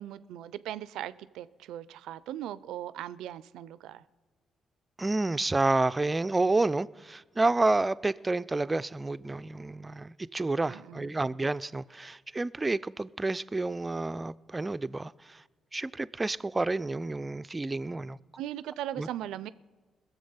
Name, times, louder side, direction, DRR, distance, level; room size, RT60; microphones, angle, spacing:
voice 1, 0.0-4.0 10.7-11.1 18.4-19.5, right 12 dB, 80° right, 0.4 m, -39 dB
voice 2, 5.0-15.4 15.7-18.2 19.0-19.1, right 2 dB, 25° right, 0.4 m, -29 dB
21.0 x 7.3 x 5.6 m
supercardioid pair, 55°, 0 cm